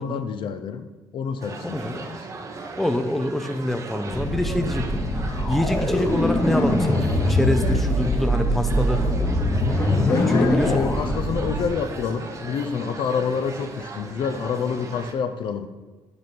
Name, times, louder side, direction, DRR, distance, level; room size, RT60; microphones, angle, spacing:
voice 1, 0.0-2.3 10.1-15.7, left 6 dB, 60° left, 0.5 m, -28 dB
sound 1, 1.4-15.1, right 3 dB, 35° right, 0.8 m, -37 dB
voice 2, 1.6-1.9 2.8-5.0 5.5-9.0 9.9-10.8, left 1 dB, ahead, 0.4 m, -26 dB
sound 2, 4.1-11.7, left 1 dB, 25° left, 1.0 m, -23 dB
6.6 x 4.4 x 5.1 m
cardioid pair, 125°, 9 cm